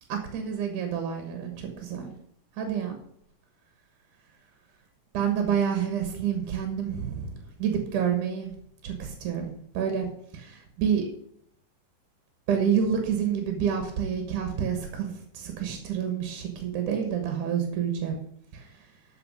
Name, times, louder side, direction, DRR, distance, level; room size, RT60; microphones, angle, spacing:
voice 1, 0.1-2.1 2.6-3.0 5.1-8.5 8.8-11.0 12.5-18.2 18.5-18.7, right 8 dB, 70° right, 4 dB, 2.9 m, -28 dB
13.0 x 5.7 x 5.3 m, 0.68 s
omnidirectional pair, 3.9 m